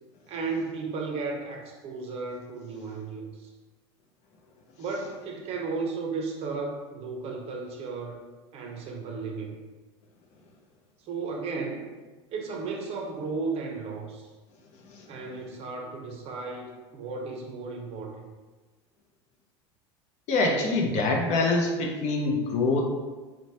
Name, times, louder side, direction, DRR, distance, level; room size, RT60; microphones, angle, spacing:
voice 1, 0.3-3.5 4.8-8.2 8.5-9.6 11.0-11.9 12.3-14.3 15.1-18.3, right 4 dB, 45° right, 2 dB, 0.6 m, -34 dB
voice 2, 20.3-22.8, left 3 dB, 50° left, 0 dB, 0.6 m, -25 dB
3.0 x 2.2 x 2.7 m, 1.3 s
hypercardioid pair, 90°, 14 cm